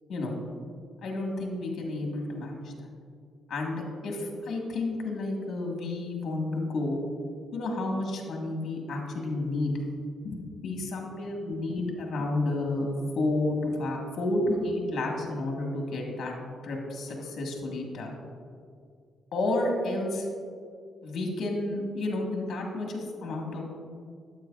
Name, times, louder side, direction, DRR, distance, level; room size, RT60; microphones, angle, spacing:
voice 1, 1.0-2.7 3.5-7.0 7.5-9.7 10.2-12.9 13.1-16.3 16.6-18.2 19.3-20.3 21.0-23.6, left 2 dB, 60° left, 1 dB, 1.5 m, -31 dB
9.1 x 8.1 x 2.4 m, 2.2 s
cardioid pair, 90°, 0 cm